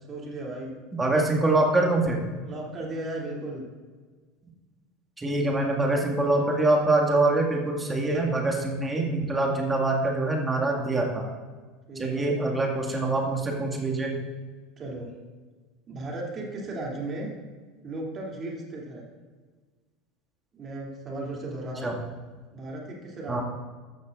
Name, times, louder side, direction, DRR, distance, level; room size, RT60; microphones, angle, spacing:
voice 1, 0.1-0.8 2.4-3.7 11.9-13.1 14.8-15.1 15.9-17.3 17.8-19.0 20.5-21.9 22.5-23.4, right 2 dB, 30° right, -2 dB, 3.0 m, -36 dB
voice 2, 1.0-2.2 5.2-11.2 12.0-14.2 21.8-21.9 23.3-23.4, right 2 dB, 15° right, 0 dB, 2.1 m, -24 dB
14.5 x 12.0 x 2.6 m, 1.4 s
figure-of-eight pair, 75°, 0 cm